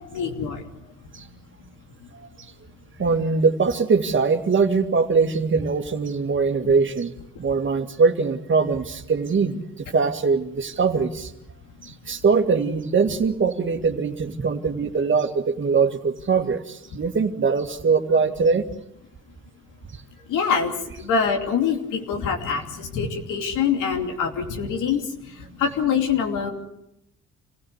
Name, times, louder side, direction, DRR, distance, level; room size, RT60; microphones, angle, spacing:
voice 1, 0.1-0.6 20.3-20.7 21.0-25.0 25.6-26.5, left 6 dB, 90° left, 5 dB, 2.8 m, -24 dB
voice 2, 3.0-11.3 11.8-18.6, right 4 dB, 40° right, 6 dB, 2.1 m, -22 dB
26.5 x 16.5 x 8.2 m, 0.82 s
cardioid pair, 90°, 30 cm